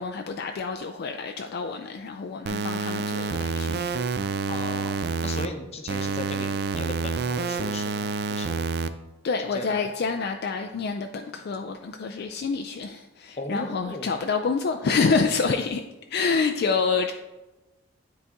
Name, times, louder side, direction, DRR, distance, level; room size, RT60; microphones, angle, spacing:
voice 1, 0.0-4.0 9.2-15.8 16.1-17.1, left 4 dB, 55° left, 5 dB, 0.3 m, -27 dB
sound 1, 2.5-5.5 5.9-8.9, right 4 dB, 55° right, 0.4 m, -28 dB
voice 2, 4.5-5.0 5.2-8.7 9.4-9.9 13.4-14.1, left 2 dB, 30° left, 5 dB, 0.7 m, -37 dB
9.7 x 4.1 x 3.5 m, 1.1 s
head